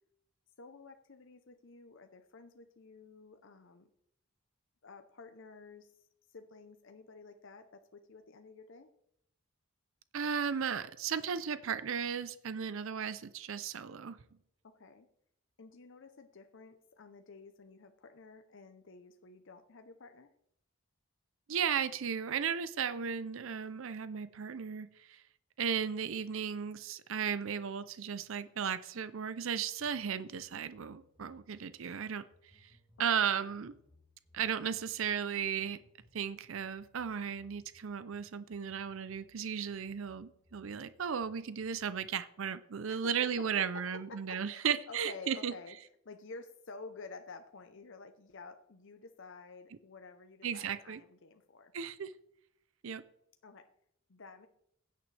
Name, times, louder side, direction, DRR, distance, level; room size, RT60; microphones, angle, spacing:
voice 1, 0.6-3.9 4.8-8.9 14.6-15.1 15.6-20.3 42.9-45.8 46.0-51.7 53.4-53.7 54.1-54.5, left 4 dB, 60° left, 7 dB, 0.7 m, -51 dB
voice 2, 10.1-14.2 21.5-25.2 25.6-32.2 32.5-32.7 33.0-33.7 34.3-35.8 36.1-45.5 50.4-51.0 51.7-52.1 52.8-53.0, right 7 dB, 65° right, 13 dB, 0.5 m, -35 dB
sound 1, 29.8-42.2, left 1 dB, 15° right, 4.4 m, -67 dB
16.0 x 9.1 x 3.3 m, 0.76 s
head